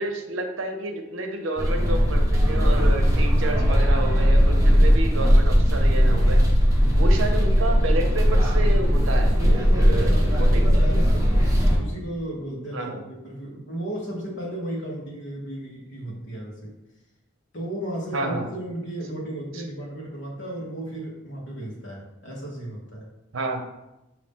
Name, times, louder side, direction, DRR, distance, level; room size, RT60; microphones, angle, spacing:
voice 1, 0.0-6.4 7.0-10.7 12.7-13.0 18.1-18.4 19.5-19.6 23.3-23.6, right 2 dB, 75° right, 4 dB, 0.7 m, -30 dB
sound 1, 1.6-11.8, equal, 15° right, 0.9 m, -18 dB
voice 2, 9.4-11.5 11.8-16.8 17.5-23.1, right 1 dB, 60° left, -2 dB, 1.2 m, -34 dB
5.4 x 2.7 x 3.5 m, 0.95 s
head